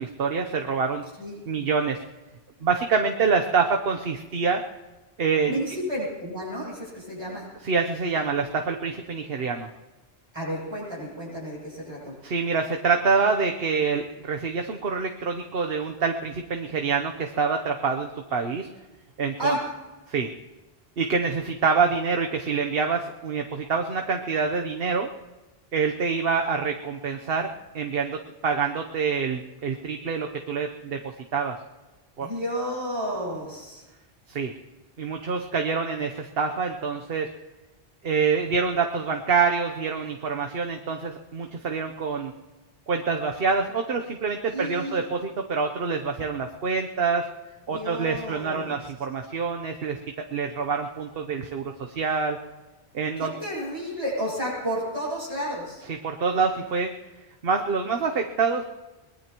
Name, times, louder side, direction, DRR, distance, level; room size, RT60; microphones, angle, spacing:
voice 1, 0.0-1.0 1.5-2.0 2.6-4.6 5.2-5.6 7.6-9.7 12.2-18.7 19.2-19.5 20.1-20.3 21.0-25.1 25.7-31.6 32.2-32.3 34.3-34.5 35.0-37.3 38.0-42.3 42.9-47.2 47.7-50.0 50.3-52.4 52.9-53.4 55.9-56.9 57.4-58.6, right 5 dB, 65° right, 3 dB, 1.1 m, -26 dB
voice 2, 5.5-7.5 10.3-12.2 19.4-19.6 32.2-33.8 44.5-45.0 47.7-48.8 53.2-55.8, equal, 25° right, -7 dB, 8.0 m, -31 dB
23.0 x 20.5 x 3.0 m, 1.1 s
omnidirectional pair, 1.1 m